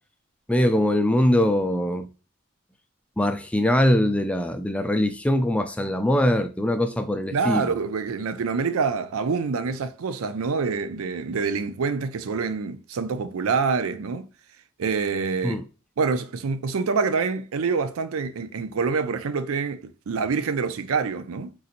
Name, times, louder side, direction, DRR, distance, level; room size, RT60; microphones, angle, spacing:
voice 1, 0.5-2.1 3.2-7.7 15.4-15.6, left 1 dB, 5° left, 0.3 m, -22 dB
voice 2, 7.3-14.3 14.8-15.6 16.0-21.5, right 5 dB, 80° right, 0.4 m, -26 dB
3.9 x 2.8 x 2.4 m
head